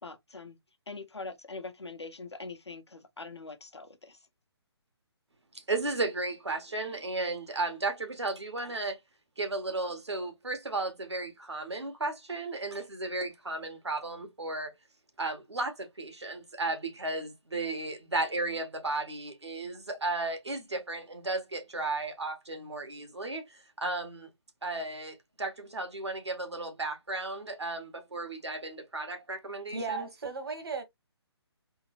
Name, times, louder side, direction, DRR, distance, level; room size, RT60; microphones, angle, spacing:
voice 1, 0.0-0.6 0.9-4.2, left 3 dB, 80° left, 1.0 m, -43 dB
voice 2, 5.5-9.0 9.4-14.7 15.2-24.3 24.6-30.1, right 2 dB, 80° right, 1.5 m, -34 dB
voice 3, 29.7-30.8, right 4 dB, 60° right, 1.3 m, -35 dB
3.7 x 2.9 x 3.1 m
figure-of-eight pair, 140°, 14 cm